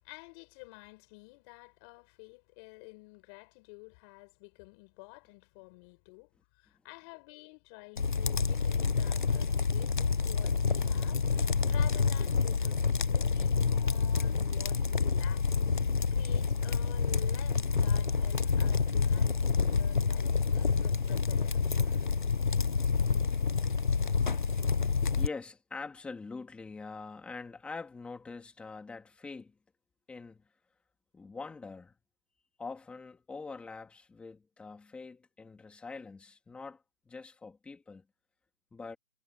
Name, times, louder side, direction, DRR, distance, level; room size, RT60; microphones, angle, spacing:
voice 1, 0.0-15.5 16.1-22.1, left 30 dB, 20° left, 6.2 m, -51 dB
sound 1, 8.0-25.3, left 5 dB, 35° left, 0.5 m, -28 dB
voice 2, 25.0-29.6 30.1-30.4 31.1-31.9 32.6-38.0 38.7-39.0, left 4 dB, 5° left, 1.9 m, -44 dB
hypercardioid pair, 165°, 42 cm